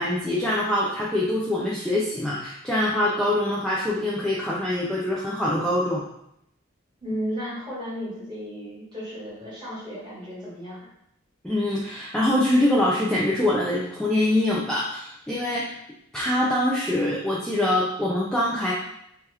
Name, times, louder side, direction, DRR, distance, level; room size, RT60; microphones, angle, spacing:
voice 1, 0.0-6.0 11.4-15.7 16.1-18.7, left 1 dB, 5° left, -7 dB, 0.4 m, -24 dB
voice 2, 7.0-10.9, equal, 25° right, -8 dB, 1.5 m, -34 dB
2.8 x 2.3 x 3.3 m, 0.75 s
head